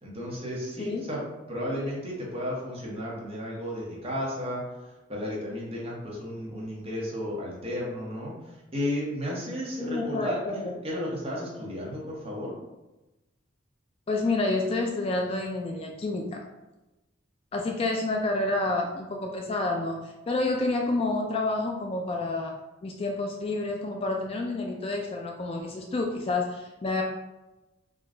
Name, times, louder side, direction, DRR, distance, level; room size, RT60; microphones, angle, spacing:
voice 1, 0.0-1.2 1.5-4.6 5.1-8.3 8.7-12.5, left 1 dB, 30° right, -4 dB, 1.0 m, -33 dB
voice 2, 9.8-10.6 14.1-16.4 17.5-22.6 22.8-27.0, left 2 dB, 30° left, 1 dB, 0.3 m, -29 dB
3.7 x 2.3 x 3.7 m, 1.0 s
head